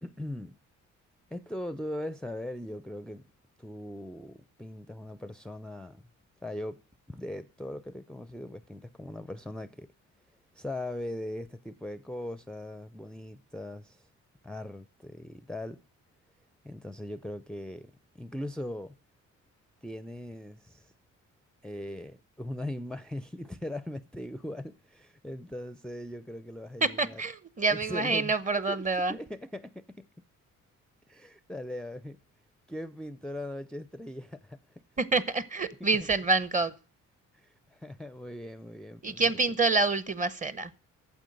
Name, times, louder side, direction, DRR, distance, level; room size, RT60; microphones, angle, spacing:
voice 1, 0.0-0.6 1.3-3.3 3.6-6.0 6.4-6.8 7.1-9.9 10.5-14.1 14.4-15.8 16.6-19.0 19.8-20.9 21.6-27.2 27.7-28.3 28.7-30.1 31.1-32.2 32.7-34.6 35.8-35.9 37.3-39.4, left 1 dB, 5° left, 0.5 m, -40 dB
voice 2, 27.0-29.2 35.0-36.7 39.0-40.7, right 3 dB, 25° right, 0.9 m, -27 dB
9.1 x 7.4 x 7.7 m
cardioid pair, 90°, 30 cm